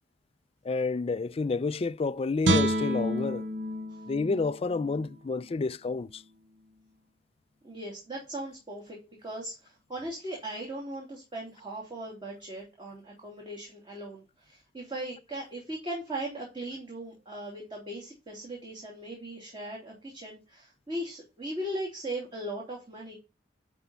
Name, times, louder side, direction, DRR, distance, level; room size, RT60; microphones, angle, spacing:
voice 1, 0.6-3.5 4.1-6.2, left 4 dB, 35° left, 0.4 m, -29 dB
Guitar, 2.4-5.6 6.0-6.2, right 1 dB, 80° right, 0.9 m, -30 dB
voice 2, 7.6-23.2, right 1 dB, 30° right, 2.8 m, -38 dB
10.5 x 4.6 x 4.0 m
head